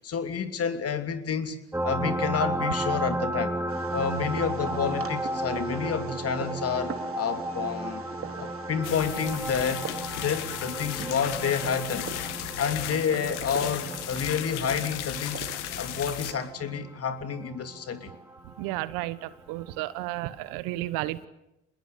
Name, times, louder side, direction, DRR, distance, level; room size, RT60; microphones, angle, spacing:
voice 1, 0.0-1.6 1.8-3.5 3.9-8.0 8.4-9.9 10.2-12.1 12.6-15.5 15.8-18.1, left 7 dB, 40° left, 9 dB, 3.0 m, -29 dB
sound 1, 1.7-18.9 20.5-20.6, right 1 dB, 5° right, 1.9 m, -34 dB
Fireworks, 3.7-16.5, right 6 dB, 40° right, 3.2 m, -42 dB
sound 2, 8.8-16.3, left 15 dB, 80° left, 1.6 m, -36 dB
voice 2, 18.6-21.3, right 17 dB, 70° right, 17 dB, 1.3 m, -32 dB
27.0 x 20.5 x 8.5 m, 0.89 s
hypercardioid pair, 65°, 35 cm